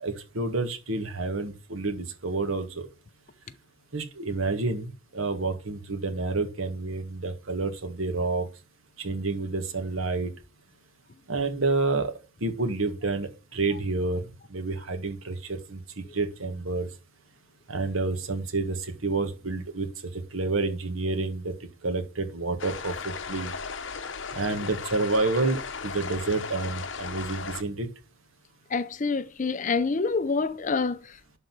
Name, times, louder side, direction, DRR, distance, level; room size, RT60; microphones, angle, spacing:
voice 1, 0.0-2.8 3.9-8.5 9.0-10.3 11.3-12.1 12.4-14.2 14.5-16.9 17.7-19.9 20.3-21.5 21.8-22.9 23.3-23.5 24.3-27.9, right 3 dB, 85° right, 1.7 m, -29 dB
sound 1, 22.6-27.6, left 5 dB, 65° left, 0.9 m, -36 dB
voice 2, 28.7-31.4, left 4 dB, 40° left, 0.5 m, -27 dB
11.5 x 4.0 x 6.1 m
head